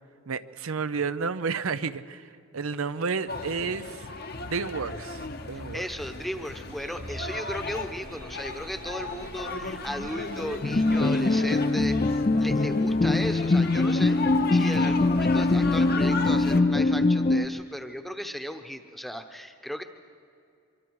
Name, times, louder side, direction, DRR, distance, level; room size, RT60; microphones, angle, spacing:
voice 1, 0.3-4.1 4.5-5.9, right 5 dB, 90° right, 13 dB, 0.7 m, -31 dB
sound 1, 3.3-16.6, left 4 dB, 50° left, 1.0 m, -36 dB
voice 2, 5.7-19.8, equal, ahead, 7 dB, 0.9 m, -36 dB
sound 2, 6.6-12.2 12.6-12.7, right 2 dB, 40° right, 1.4 m, -46 dB
sound 3, 10.6-17.5, left 2 dB, 30° left, 0.4 m, -23 dB
24.5 x 24.0 x 4.8 m, 2.4 s
head